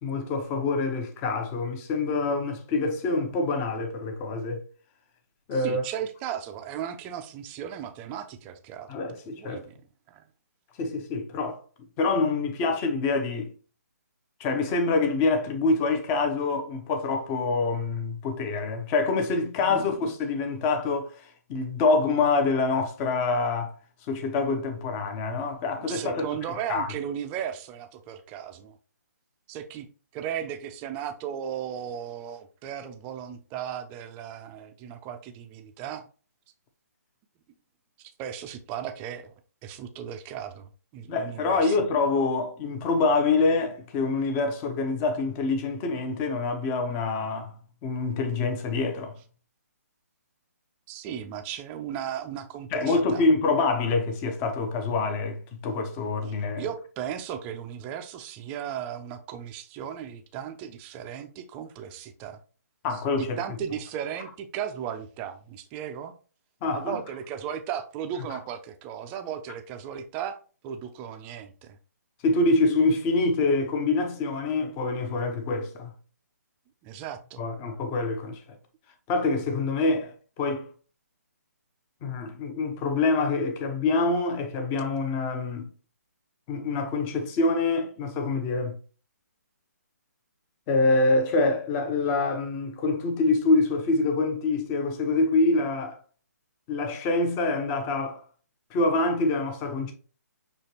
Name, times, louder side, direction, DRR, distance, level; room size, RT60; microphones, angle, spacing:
voice 1, 0.0-4.6 5.5-5.8 8.9-9.6 10.8-11.6 12.0-13.5 14.4-23.7 24.1-26.2 26.7-26.9 41.1-47.6 47.8-49.1 52.7-56.7 62.8-63.4 66.6-67.0 72.2-75.9 77.4-78.4 79.1-80.7 82.0-85.7 86.5-88.8 90.7-96.0 96.7-98.2 98.7-99.9, left 3 dB, 20° left, 0.7 m, -26 dB
voice 2, 5.5-8.9 9.4-9.8 10.1-10.2 19.6-20.1 25.7-28.8 29.5-29.9 30.1-36.1 38.0-39.3 39.6-41.8 50.9-53.2 56.6-62.4 62.9-66.1 66.7-71.8 76.8-77.5, right 9 dB, 20° right, 0.5 m, -36 dB
6.4 x 2.9 x 2.8 m
figure-of-eight pair, 140°, 9 cm